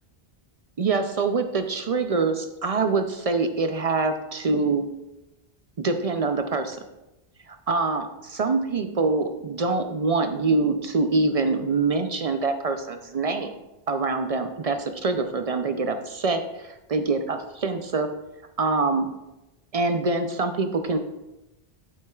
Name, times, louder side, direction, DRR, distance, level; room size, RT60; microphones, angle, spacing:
voice 1, 0.8-4.9 5.8-6.8 7.5-13.5 13.9-18.1 18.6-19.1 19.7-21.0, right 3 dB, 50° right, 7 dB, 0.4 m, -25 dB
8.6 x 7.9 x 2.3 m, 0.96 s
omnidirectional pair, 1.1 m